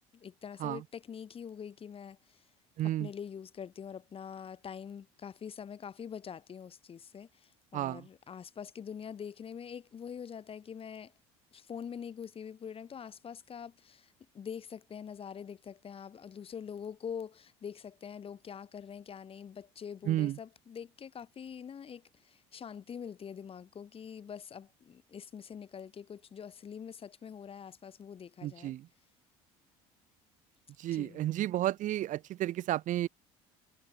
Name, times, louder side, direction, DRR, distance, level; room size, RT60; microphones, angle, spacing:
voice 1, 0.1-2.4 2.8-11.1 11.5-28.8 30.9-31.3, left 7 dB, 40° left, 7.0 m, -44 dB
voice 2, 2.8-3.1 7.7-8.0 20.1-20.4 28.4-28.9 30.8-33.1, right 14 dB, 60° right, 3.1 m, -32 dB
supercardioid pair, 85°, 15 cm